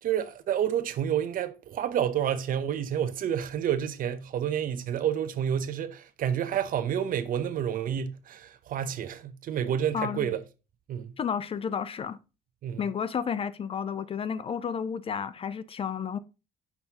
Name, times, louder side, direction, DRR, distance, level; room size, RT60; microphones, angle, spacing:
voice 1, 0.0-10.4 10.9-11.2 12.6-12.8, right 9 dB, 55° right, 0.7 m, -29 dB
voice 2, 9.9-10.3 11.2-12.2 12.8-16.2, left 7 dB, 35° left, 0.4 m, -31 dB
5.9 x 5.5 x 2.8 m
cardioid pair, 110°, 17 cm